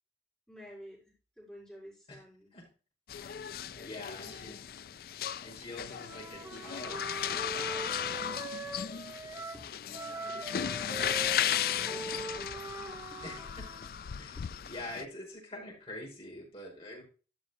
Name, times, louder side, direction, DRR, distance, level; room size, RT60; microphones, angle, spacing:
voice 1, 0.5-2.5 3.7-4.6 6.9-7.0 9.5-13.4 14.4-14.5, equal, 5° left, -5 dB, 5.0 m, -53 dB
sound 1, 3.1-15.0, left 9 dB, 55° left, 0.3 m, -36 dB
voice 2, 3.8-4.6 5.4-8.2 13.2-13.7 14.2-14.4 14.7-17.0, left 1 dB, 30° left, -2 dB, 5.1 m, -45 dB
Wind instrument woodwind instrument, 5.9-9.6 9.9-13.9, right 2 dB, 15° right, 1.3 m, -42 dB
13.0 x 6.5 x 2.9 m, 0.36 s
head